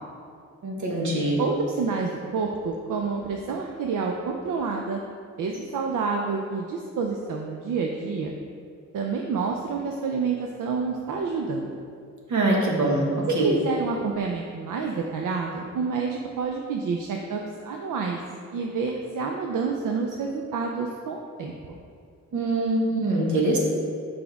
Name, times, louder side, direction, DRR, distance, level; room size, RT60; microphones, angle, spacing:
voice 1, 0.6-1.4 12.3-13.0 13.3-13.5 22.3-23.6, right 2 dB, 70° right, -2 dB, 1.3 m, -23 dB
voice 2, 1.4-5.0 5.4-8.3 8.9-11.8 13.4-18.2 18.5-21.5, right 4 dB, 85° right, 1 dB, 0.6 m, -28 dB
7.0 x 5.0 x 3.5 m, 2.3 s
wide cardioid pair, 175°, 31 cm